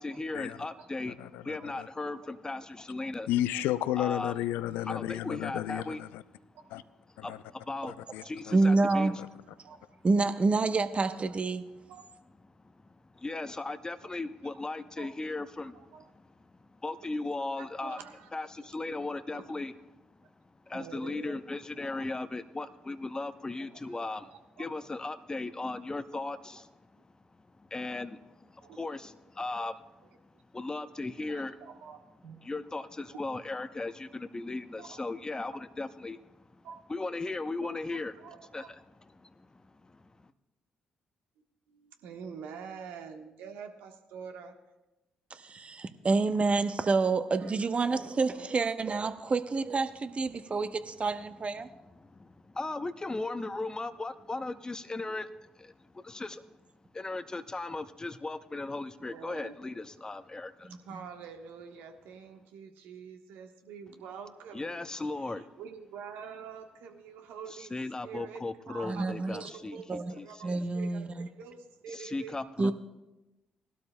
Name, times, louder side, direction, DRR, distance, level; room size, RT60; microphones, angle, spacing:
voice 1, 0.0-1.1 1.4-3.3 4.0-4.3 4.9-6.0 7.2-9.1 12.6-16.1 16.7-18.0 18.3-19.7 20.7-26.6 27.7-29.9 30.5-31.6 32.4-36.4 36.9-38.1 38.5-40.3 52.0-56.4 56.9-60.7 64.5-65.4 67.6-70.6 71.9-72.7, left 2 dB, 20° left, 0.7 m, -37 dB
voice 2, 1.1-1.9 3.3-6.2 6.7-6.8 7.2-7.4 7.9-8.2 9.2-9.3, left 13 dB, 75° left, 0.4 m, -32 dB
voice 3, 8.5-9.1 10.0-11.7 45.3-51.7 60.7-60.8 68.8-69.5 69.9-70.1 70.4-71.3 72.6-72.7, right 3 dB, 40° right, 0.9 m, -28 dB
voice 4, 15.7-16.0 17.6-18.3 18.6-18.7 19.3-19.4 20.7-21.4 21.8-22.1 23.9-24.0 24.3-24.4 26.1-26.2 26.5-26.6 28.6-28.8 29.4-29.5 31.2-32.4 33.1-33.2 34.8-35.0 36.6-36.8 37.6-38.7 41.7-44.5 46.8-46.9 47.4-47.6 47.9-48.2 48.7-48.8 59.0-59.5 60.8-64.9 65.6-67.8 68.0-68.4 68.7-71.0 71.4-72.7, right 6 dB, 70° right, 1.2 m, -46 dB
19.5 x 12.0 x 2.2 m
hypercardioid pair, 45°, 3 cm